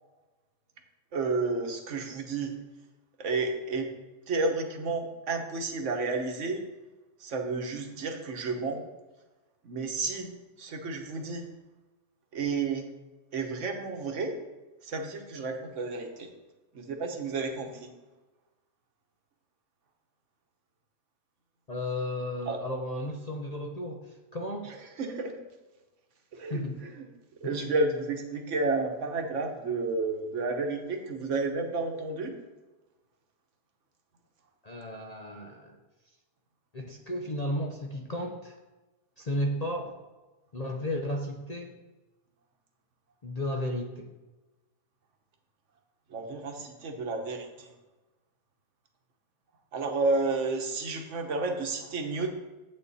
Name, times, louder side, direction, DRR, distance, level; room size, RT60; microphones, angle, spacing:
voice 1, 1.1-2.5 3.2-3.9 4.3-6.6 7.2-8.8 9.6-10.3 10.6-11.5 12.3-12.9 13.3-14.4 14.8-16.3 16.7-17.9 22.5-22.6 24.7-25.3 26.3-26.6 27.0-27.1 27.4-32.3 46.1-47.7 49.7-52.4, right 3 dB, 50° right, 3 dB, 1.3 m, -31 dB
voice 2, 21.7-24.7 26.5-26.8 27.4-27.5 34.6-35.8 36.7-38.5 39.2-40.0 40.5-41.8 43.2-44.1, left 1 dB, 45° left, 0 dB, 0.5 m, -34 dB
8.8 x 8.1 x 4.1 m, 1.1 s
omnidirectional pair, 1.7 m